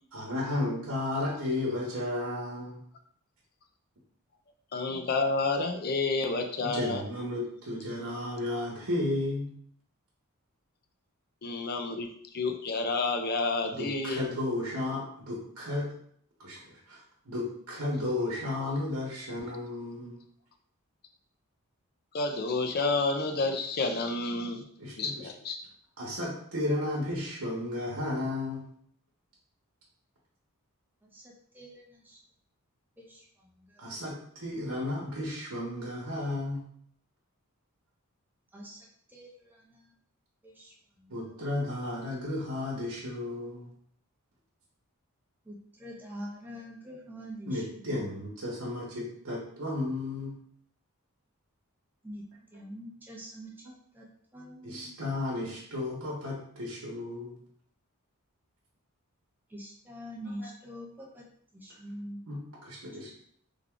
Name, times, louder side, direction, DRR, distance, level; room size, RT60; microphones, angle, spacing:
voice 1, 0.1-2.8 6.6-9.5 13.7-15.9 16.4-17.0 17.3-20.2 24.8-25.3 26.0-28.6 33.8-36.6 41.1-43.7 47.5-50.3 54.6-57.3 62.3-63.1, left 2 dB, 70° right, -4 dB, 0.9 m, -33 dB
voice 2, 4.7-7.0 11.4-14.2 22.1-24.7 25.0-25.6, left 3 dB, 45° left, 5 dB, 0.4 m, -30 dB
voice 3, 31.0-32.2 33.0-33.8 38.5-39.9 40.4-41.3 45.4-48.1 52.0-52.2 52.5-53.7 53.9-54.1 54.3-54.9 59.5-61.3 61.5-62.2, equal, 10° right, -3 dB, 0.6 m, -45 dB
3.5 x 2.3 x 3.6 m, 0.62 s
head